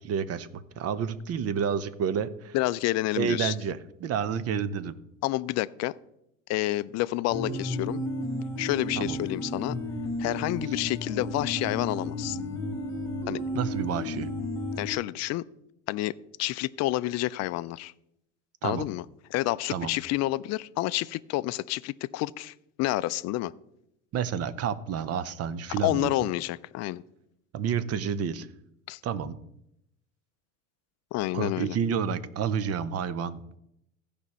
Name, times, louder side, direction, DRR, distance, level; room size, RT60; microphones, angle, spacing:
voice 1, 0.0-2.5 3.2-5.0 9.0-9.2 13.5-14.3 18.6-18.9 19.7-19.9 24.1-26.1 27.5-28.5 29.0-29.4 31.3-33.4, right 7 dB, 40° right, 15 dB, 0.8 m, -30 dB
voice 2, 2.5-3.6 5.2-5.9 6.5-8.0 8.6-9.8 10.2-12.4 13.3-13.4 14.8-15.5 15.9-17.9 18.6-19.0 19.3-23.5 25.8-27.0 28.9-29.0 31.1-31.8, left 17 dB, 45° left, 16 dB, 0.5 m, -29 dB
sound 1, 7.3-15.0, left 1 dB, 5° left, 2.4 m, -33 dB
15.5 x 5.2 x 4.2 m, 0.80 s
hypercardioid pair, 80°, 38 cm